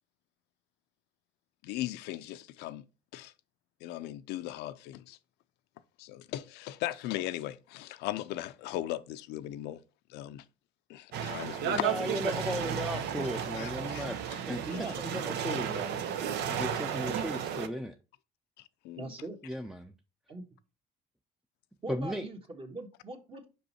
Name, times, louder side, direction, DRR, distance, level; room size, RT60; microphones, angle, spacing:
voice 1, 1.6-2.9 3.1-3.3 3.8-5.2 6.0-9.8 10.1-10.4 10.9-12.4 13.6-14.1 14.9-15.0 18.6-19.1, left 14 dB, 90° left, 0.5 m, -38 dB
sound 1, 11.1-17.7, right 8 dB, 80° right, 0.8 m, -33 dB
voice 2, 11.7-14.2 14.5-17.9 19.4-19.9 21.9-22.3, equal, ahead, 0.5 m, -36 dB
voice 3, 19.0-19.4 20.3-20.4 21.8-23.4, right 2 dB, 30° right, 1.6 m, -41 dB
5.6 x 5.3 x 4.2 m
cardioid pair, 110°, 17 cm